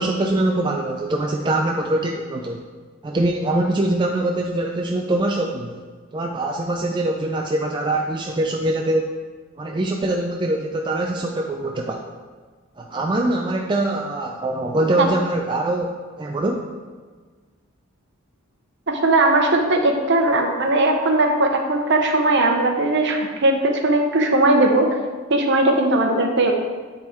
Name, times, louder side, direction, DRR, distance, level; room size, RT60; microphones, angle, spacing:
voice 1, 0.0-2.6 3.0-5.8 6.1-9.1 9.6-12.0 12.8-16.6, right 1 dB, 20° right, 1 dB, 0.3 m, -23 dB
voice 2, 18.9-24.9 25.3-26.5, right 2 dB, 55° right, 3 dB, 0.8 m, -18 dB
8.8 x 3.6 x 4.4 m, 1.5 s
head